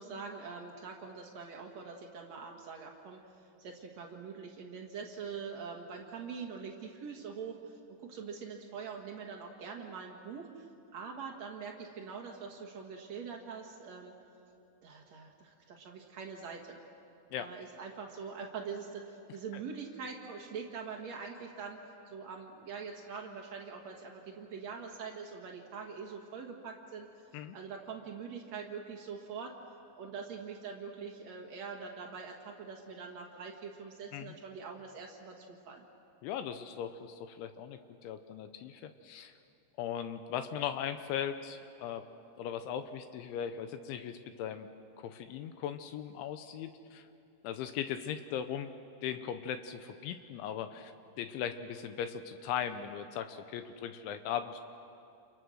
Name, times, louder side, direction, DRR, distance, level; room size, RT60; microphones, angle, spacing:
voice 1, 0.0-14.1 14.8-16.8 17.4-29.5 30.0-35.8, right 5 dB, 85° right, 0 dB, 1.5 m, -44 dB
voice 2, 36.2-39.3 39.8-42.0 42.4-44.7 45.0-47.1 47.4-48.7 49.0-54.6, left 9 dB, 80° left, 9 dB, 3.0 m, -38 dB
29.5 x 28.5 x 6.3 m, 2.6 s
omnidirectional pair, 5.9 m